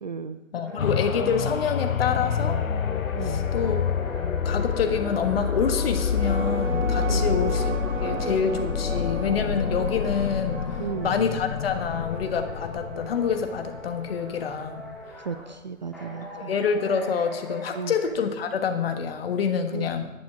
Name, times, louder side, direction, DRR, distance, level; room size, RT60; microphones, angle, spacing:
voice 1, 0.0-0.4 3.2-3.5 7.1-7.4 10.8-11.2 15.2-16.5 17.8-17.9 19.7-20.1, right 6 dB, 35° right, 10 dB, 0.4 m, -34 dB
voice 2, 0.5-2.6 3.2-3.8 4.4-7.7 8.0-10.6 11.0-14.9 16.4-20.1, left 6 dB, 45° left, 7 dB, 1.4 m, -27 dB
sound 1, 0.6-11.2 11.5-15.5 15.9-18.1, right 1 dB, ahead, 2.3 m, -40 dB
sound 2, 0.8-14.4 14.9-15.0, left 7 dB, 80° left, 0.7 m, -28 dB
sound 3, 6.0-14.6, right 3 dB, 65° right, 2.1 m, -35 dB
11.0 x 9.6 x 4.9 m, 1.1 s
figure-of-eight pair, 140°, 41 cm